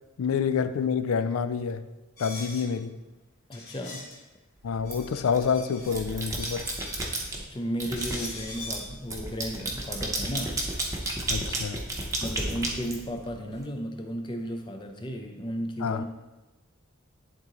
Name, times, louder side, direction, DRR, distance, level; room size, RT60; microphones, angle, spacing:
voice 1, 0.2-1.8 2.2-3.0 4.6-6.7 11.3-11.8 15.8-16.0, left 6 dB, 80° left, 13 dB, 0.4 m, -27 dB
sound 1, 2.2-2.7 3.5-4.2 4.7-6.0 6.3-7.0 8.0-8.9, left 3 dB, 45° left, 1.3 m, -42 dB
voice 2, 3.5-4.1 7.4-10.6 12.2-16.0, equal, 20° left, 4 dB, 0.5 m, -34 dB
sound 2, 4.9-5.4 5.8-7.4 7.8-13.6, right 2 dB, 15° right, 0.8 m, -32 dB
11.0 x 3.8 x 3.0 m, 1.1 s
head